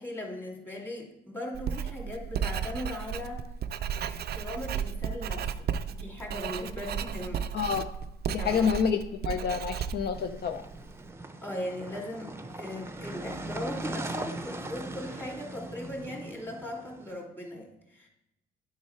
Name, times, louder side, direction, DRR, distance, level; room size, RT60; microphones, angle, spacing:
voice 1, 0.0-3.4 4.0-7.5 8.4-8.7 11.4-18.1, left 1 dB, 10° left, 0 dB, 2.2 m, -39 dB
Writing, 1.5-11.0, right 8 dB, 55° right, 0.4 m, -34 dB
voice 2, 7.5-7.9 8.3-10.6, left 7 dB, 55° left, 7 dB, 0.5 m, -28 dB
sound 1, 10.1-17.1, right 2 dB, 10° right, 0.6 m, -40 dB
8.5 x 4.8 x 4.5 m, 0.86 s
cardioid pair, 90°, 20 cm